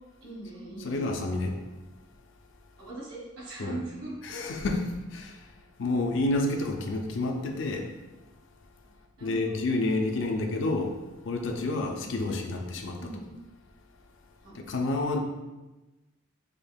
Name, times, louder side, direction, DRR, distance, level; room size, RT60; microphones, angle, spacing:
voice 1, 0.2-1.1 2.8-4.1 9.2-9.6 11.7-12.3 13.0-13.2 14.4-14.5, right 2 dB, 80° right, -5 dB, 1.4 m, -41 dB
voice 2, 0.8-1.6 3.6-3.8 4.2-5.5 5.8-7.9 9.2-10.9 11.2-13.0 14.5-15.2, left 2 dB, 65° left, 3 dB, 0.5 m, -29 dB
5.1 x 2.8 x 2.3 m, 1.1 s
head